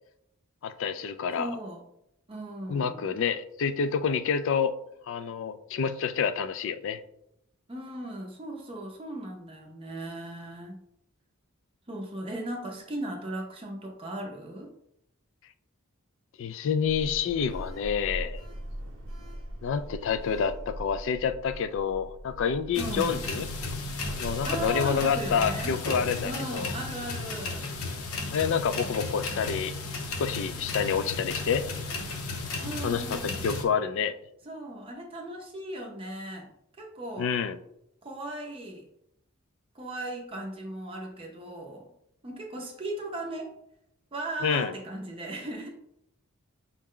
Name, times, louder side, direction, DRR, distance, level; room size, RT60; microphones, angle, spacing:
voice 1, 0.6-1.5 2.7-4.7 5.0-7.0 16.4-18.4 19.6-23.5 24.2-26.7 28.3-29.7 30.2-31.6 32.8-34.2 37.2-37.6 44.4-44.7, left 6 dB, 60° left, 12 dB, 0.3 m, -28 dB
voice 2, 1.3-1.8 2.3-3.1 7.7-10.8 11.9-14.7 22.8-23.2 24.4-25.7 26.2-27.7 32.6-33.4 34.4-36.5 36.8-37.3 38.0-38.8 39.7-41.9 42.2-43.5 44.1-45.7, right 1 dB, 25° right, 1 dB, 0.5 m, -37 dB
Sliding door, 16.8-26.4, equal, 75° right, 0.8 m, -41 dB
sound 1, 22.7-33.6, left 3 dB, 80° left, 0.7 m, -34 dB
5.6 x 2.1 x 3.7 m, 0.78 s
head